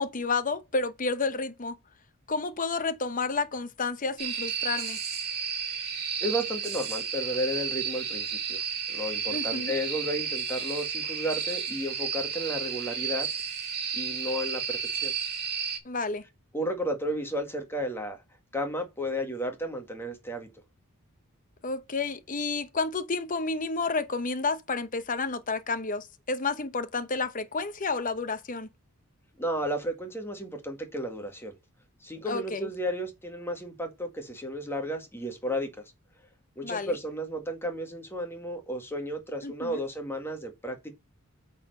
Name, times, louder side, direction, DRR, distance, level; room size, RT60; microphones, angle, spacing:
voice 1, 0.0-1.8 2.3-5.0 9.3-9.7 15.8-16.2 21.6-28.7 32.3-32.7 36.6-36.9 39.4-39.8, left 4 dB, 35° left, 0.9 m, -30 dB
sound 1, 4.2-15.8, right 7 dB, 45° right, 2.4 m, -32 dB
voice 2, 6.2-8.6 8.9-13.3 13.9-15.1 16.5-18.2 18.5-20.5 29.4-31.5 32.0-35.7 36.5-40.9, equal, 10° left, 1.7 m, -33 dB
8.6 x 4.3 x 5.3 m
head